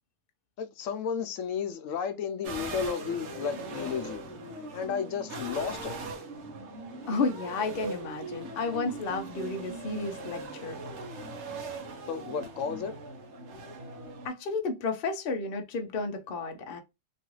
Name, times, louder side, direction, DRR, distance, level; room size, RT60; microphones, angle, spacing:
voice 1, 0.6-4.2 4.7-6.0 12.1-12.9, left 6 dB, 85° left, 1.0 m, -33 dB
sound 1, 2.4-14.3, right 2 dB, 65° right, 1.0 m, -40 dB
voice 2, 7.1-10.8 14.2-16.8, left 3 dB, 55° left, 0.8 m, -32 dB
3.0 x 2.4 x 3.0 m
omnidirectional pair, 1.3 m